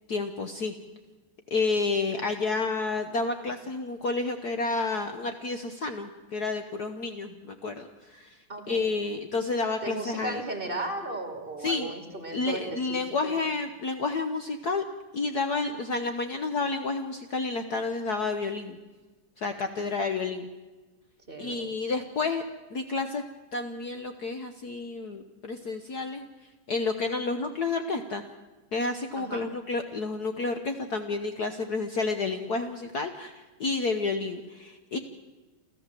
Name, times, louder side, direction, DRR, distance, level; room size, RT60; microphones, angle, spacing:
voice 1, 0.1-0.7 1.5-8.4 8.7-10.4 11.6-11.9 12.3-14.8 15.1-18.8 19.4-20.5 21.4-22.4 22.7-23.2 23.5-26.2 26.7-28.2 28.7-35.0, left 3 dB, 55° left, 7 dB, 1.4 m, -30 dB
voice 2, 8.5-8.9 9.8-13.4 15.7-15.9 21.3-21.7 29.2-29.5, right 2 dB, 25° right, 5 dB, 2.7 m, -36 dB
29.5 x 13.5 x 7.6 m, 1.2 s
omnidirectional pair, 2.4 m